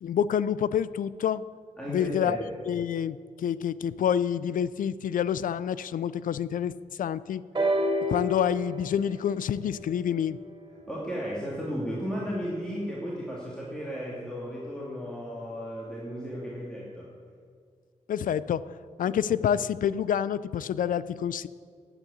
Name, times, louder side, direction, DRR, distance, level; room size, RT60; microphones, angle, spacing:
voice 1, 0.0-1.4 1.9-2.4 2.7-6.7 7.0-7.4 8.1-10.4 18.1-18.6 19.0-21.5, left 9 dB, 90° left, 17 dB, 0.4 m, -27 dB
voice 2, 1.8-2.4 10.9-17.1 19.0-19.1, equal, 5° left, -6 dB, 2.5 m, -34 dB
sound 1, 7.5-11.4 12.3-12.4, equal, 35° right, 3.5 m, -31 dB
11.5 x 8.2 x 8.5 m, 2.1 s
wide cardioid pair, 115°, 14 cm